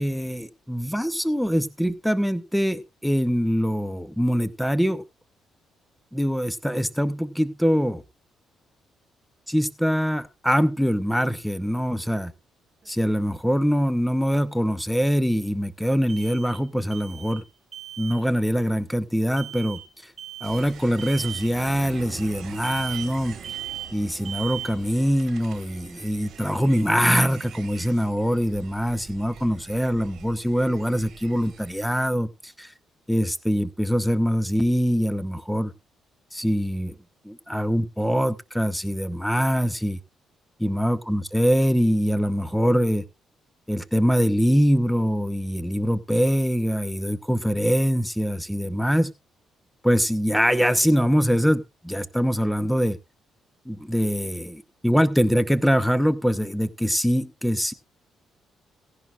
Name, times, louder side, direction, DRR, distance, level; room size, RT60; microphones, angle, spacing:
voice 1, 0.0-5.0 6.1-8.0 9.5-12.3 12.9-17.4 18.0-20.1 20.4-23.4 23.9-32.7 33.1-35.7 36.3-36.9 37.2-40.0 40.6-43.0 43.7-49.1 49.8-53.0 53.7-57.7, equal, ahead, 14 dB, 0.8 m, -23 dB
sound 1, 12.8-12.9 16.1-16.7 16.9-17.5 17.7-18.2 19.4-19.9 20.2-20.7 21.0-21.5 22.6-23.2 23.4-24.0 24.2-24.8, right 12 dB, 40° right, 4.7 m, -37 dB
sound 2, 20.4-32.1, right 8 dB, 65° right, 1.5 m, -44 dB
17.0 x 10.5 x 2.4 m, 0.25 s
cardioid pair, 90°, 0 cm